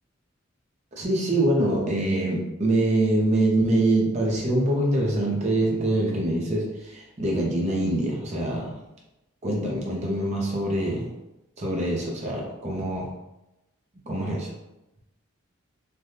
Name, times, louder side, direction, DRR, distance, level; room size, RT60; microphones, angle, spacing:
voice 1, 0.9-8.7 9.4-11.1 11.6-13.1 14.1-14.5, right 1 dB, 30° right, -2 dB, 0.6 m, -24 dB
3.3 x 2.2 x 2.7 m, 0.96 s
head